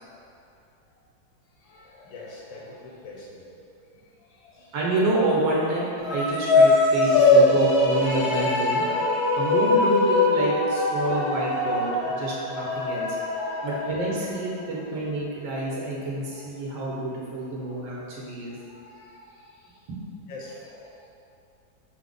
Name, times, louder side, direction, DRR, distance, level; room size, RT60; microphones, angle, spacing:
voice 1, 1.6-3.6 4.2-4.7 7.3-7.6 12.2-12.3 13.0-13.7 16.3-16.4 18.4-19.8 20.3-21.1, left 2 dB, 90° left, -4 dB, 1.5 m, -45 dB
voice 2, 4.7-8.8 9.4-13.2 13.6-18.6 19.9-20.0, right 1 dB, 80° right, -5 dB, 1.6 m, -28 dB
sound 1, 6.0-14.5, left 2 dB, 70° left, 1.0 m, -22 dB
5.5 x 2.0 x 3.8 m, 2.6 s
omnidirectional pair, 2.0 m